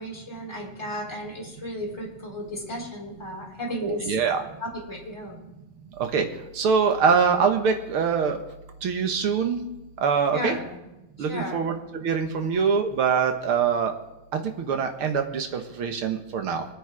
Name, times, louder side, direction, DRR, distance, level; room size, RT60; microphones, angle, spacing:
voice 1, 0.0-4.1 4.6-5.4 10.3-10.6 11.3-11.6, equal, 10° left, -3 dB, 4.7 m, -34 dB
voice 2, 3.8-4.4 6.0-6.3 6.5-8.4 8.8-9.6 10.0-10.6 11.2-13.9 14.3-16.7, right 6 dB, 75° right, 5 dB, 2.3 m, -24 dB
24.0 x 8.8 x 4.9 m, 0.96 s
omnidirectional pair, 2.4 m